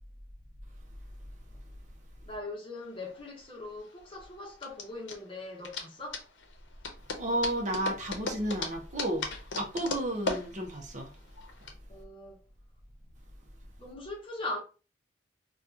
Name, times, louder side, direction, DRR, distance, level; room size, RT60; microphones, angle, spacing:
voice 1, 2.2-6.2 11.9-12.4 13.8-14.6, left 2 dB, 30° left, 0.9 m, -40 dB
sound 1, 2.8-11.7, left 3 dB, 80° left, 0.7 m, -38 dB
voice 2, 7.2-9.3 9.6-11.2, right 1 dB, 40° right, 0.7 m, -32 dB
2.8 x 2.3 x 3.6 m
head